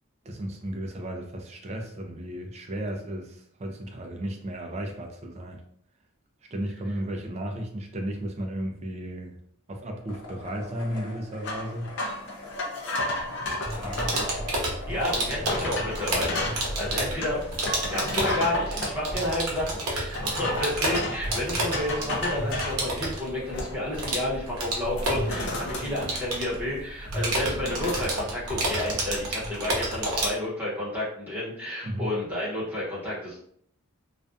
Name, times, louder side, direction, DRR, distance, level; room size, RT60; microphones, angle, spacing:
voice 1, 0.3-5.6 6.5-9.4 9.7-11.9 13.8-14.0 20.2-20.5 31.8-32.1, right 1 dB, 30° right, 3 dB, 0.3 m, -34 dB
sound 1, 10.1-27.8, left 2 dB, 85° left, 0.8 m, -45 dB
sound 2, 11.4-14.3 14.9-15.0 15.5-16.6 17.2-18.9 20.1-21.3 21.7-22.8 23.3-24.0 24.3-24.5 24.8-26.7 27.0-28.0, left 2 dB, 55° left, 0.5 m, -32 dB
sound 3, 13.6-30.3, right 1 dB, 80° right, 0.7 m, -30 dB
voice 2, 14.9-17.4 17.9-33.4, left 1 dB, 10° right, -8 dB, 0.9 m, -31 dB
2.4 x 2.2 x 2.5 m, 0.66 s
head